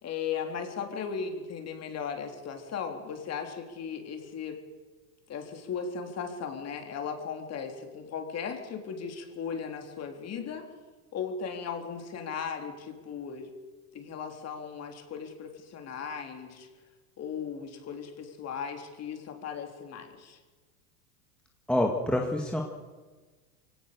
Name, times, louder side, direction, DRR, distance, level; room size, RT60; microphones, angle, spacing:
voice 1, 0.0-4.6 5.3-10.7 11.1-13.5 13.9-16.7 17.2-20.4, left 6 dB, 30° left, 5 dB, 3.5 m, -37 dB
voice 2, 21.7-22.6, left 1 dB, ahead, 1 dB, 1.8 m, -26 dB
23.5 x 17.5 x 6.9 m, 1.3 s
supercardioid pair, 130°, 48 cm